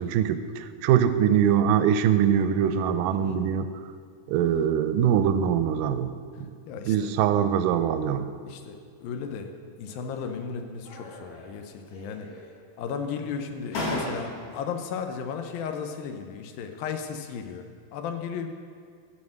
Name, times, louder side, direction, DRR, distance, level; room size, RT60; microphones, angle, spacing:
voice 1, 0.0-3.7 4.3-6.1 6.4-6.5 6.9-8.3, right 9 dB, 80° right, 10 dB, 2.1 m, -23 dB
voice 2, 3.1-3.4 6.7-7.1 8.4-9.5 9.8-12.5 12.8-18.5, left 6 dB, 85° left, 6 dB, 2.6 m, -35 dB
sound 1, 9.9-10.5 10.8-11.6 11.9-12.7 13.3-13.4 13.7-14.7, left 1 dB, 60° left, 3.6 m, -36 dB
13.0 x 4.3 x 7.7 m, 2.2 s
omnidirectional pair, 4.1 m